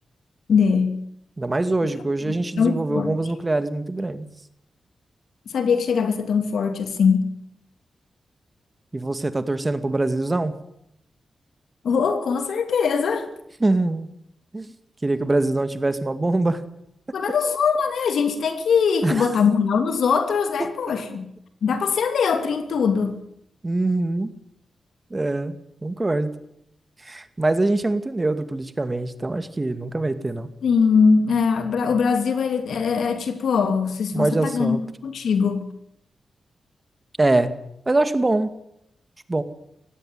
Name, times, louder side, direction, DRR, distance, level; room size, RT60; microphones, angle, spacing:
voice 1, 0.5-1.0 2.2-3.1 5.5-7.3 11.8-13.3 17.1-21.3 21.6-23.2 30.6-35.7, left 5 dB, 80° left, 8 dB, 2.8 m, -21 dB
voice 2, 1.4-4.3 8.9-10.5 13.6-14.1 14.5-14.7 15.0-16.6 19.0-19.3 23.6-24.3 25.1-26.3 27.0-30.5 34.1-34.8 37.2-37.5 37.9-38.5 39.3-39.4, right 2 dB, 30° right, 11 dB, 2.2 m, -23 dB
18.0 x 16.0 x 9.4 m, 0.77 s
cardioid pair, 55°, 0 cm